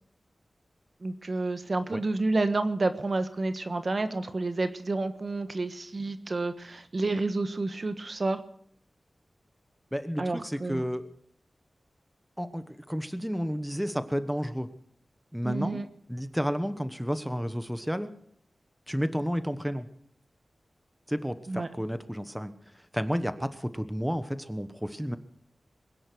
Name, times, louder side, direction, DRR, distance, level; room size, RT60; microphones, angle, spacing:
voice 1, 1.0-8.4 10.2-10.8 15.4-15.9 21.5-21.7, right 2 dB, 55° right, 9 dB, 1.3 m, -30 dB
voice 2, 9.9-11.1 12.4-14.7 15.3-15.8 16.1-18.1 18.9-19.9 21.1-22.5 22.9-25.2, equal, 5° right, 11 dB, 1.2 m, -31 dB
22.0 x 10.0 x 6.2 m, 0.65 s
cardioid pair, 50°, 0 cm